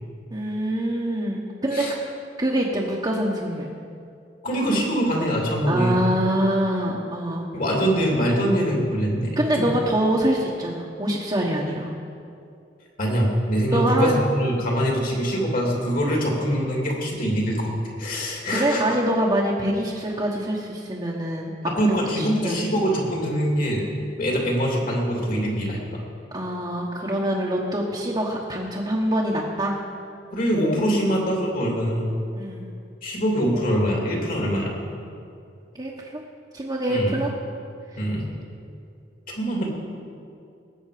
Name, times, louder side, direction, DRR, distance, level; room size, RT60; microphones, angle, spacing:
voice 1, 0.3-1.9 2.4-3.7 5.7-7.5 9.4-11.9 13.7-14.2 18.5-22.6 26.3-29.8 32.3-32.7 35.7-36.2 36.5-37.3, right 1 dB, 25° right, -4 dB, 1.2 m, -25 dB
voice 2, 4.4-6.0 7.5-9.7 13.0-18.8 21.6-23.9 24.2-26.0 30.3-32.1 33.0-34.7 36.9-37.1 38.0-38.3 39.3-39.7, equal, 50° left, -2 dB, 2.9 m, -23 dB
19.5 x 8.2 x 5.0 m, 2.5 s
head